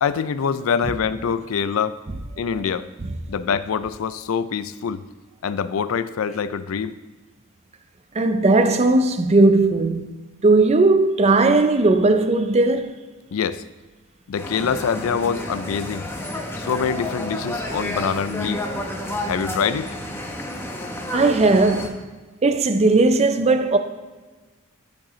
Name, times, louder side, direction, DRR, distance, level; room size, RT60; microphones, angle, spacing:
voice 1, 0.0-2.0 2.4-2.9 3.3-5.0 5.4-7.0 13.3-13.6 14.3-16.1 16.6-18.6 19.2-19.9, left 6 dB, 70° left, 0.4 m, -24 dB
voice 2, 8.2-10.1 10.4-12.9 21.1-22.0 22.4-23.8, right 2 dB, 30° right, 0.5 m, -17 dB
sound 1, 14.4-21.9, left 1 dB, 10° left, 0.8 m, -30 dB
12.5 x 5.1 x 3.1 m
head